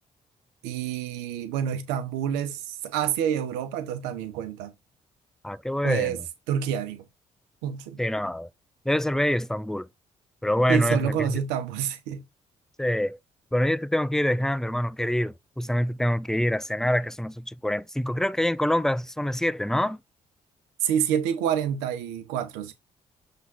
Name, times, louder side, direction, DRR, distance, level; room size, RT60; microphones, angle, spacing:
voice 1, 0.6-4.7 5.8-6.2 6.5-7.0 7.6-8.0 10.7-12.2 20.8-22.7, right 9 dB, 85° right, 1.0 m, -28 dB
voice 2, 5.4-6.2 8.0-8.5 8.9-9.9 10.4-11.4 12.8-13.2 13.5-20.0, left 1 dB, 5° left, 0.5 m, -25 dB
7.3 x 3.8 x 4.0 m
hypercardioid pair, 45°, 17 cm